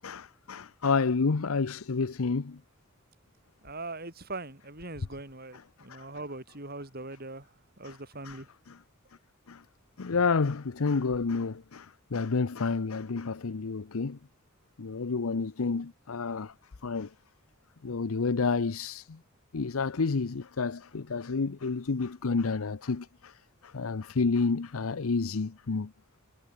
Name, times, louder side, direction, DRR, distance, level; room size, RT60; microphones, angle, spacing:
voice 1, 0.0-2.6 5.9-6.1 7.8-8.0 8.2-8.4 8.7-8.8 9.5-9.6 10.0-14.2 14.8-16.5 16.8-17.1 17.8-19.2 19.5-23.3 23.6-25.9, left 4 dB, 85° left, 0.7 m, -30 dB
voice 2, 3.6-7.5 7.8-8.5, right 2 dB, 45° right, 5.9 m, -41 dB
head